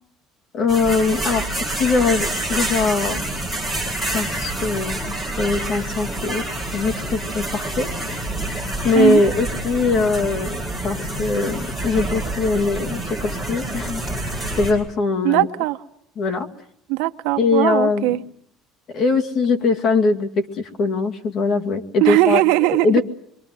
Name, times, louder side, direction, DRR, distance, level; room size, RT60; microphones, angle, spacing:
voice 1, 0.5-1.4 1.8-3.2 4.1-6.4 6.7-14.0 14.6-15.5 16.2-16.5 17.4-18.2 18.9-22.4 22.8-23.0, left 4 dB, 35° left, 2.4 m, -21 dB
sound 1, 0.7-14.7, right 1 dB, 5° left, 7.8 m, -27 dB
voice 2, 15.2-15.8 16.9-18.2 22.0-23.0, right 18 dB, 85° right, 1.2 m, -19 dB
26.5 x 24.0 x 7.8 m
cardioid pair, 180°, 0 cm